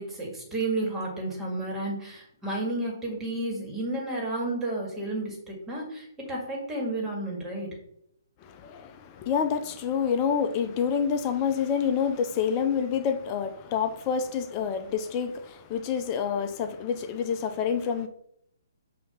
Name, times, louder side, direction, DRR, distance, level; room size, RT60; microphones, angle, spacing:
voice 1, 0.0-7.8, right 2 dB, 10° right, 2.1 m, -32 dB
voice 2, 8.4-18.1, left 7 dB, 30° left, 0.6 m, -28 dB
6.2 x 2.9 x 5.6 m
hypercardioid pair, 140°, 2 cm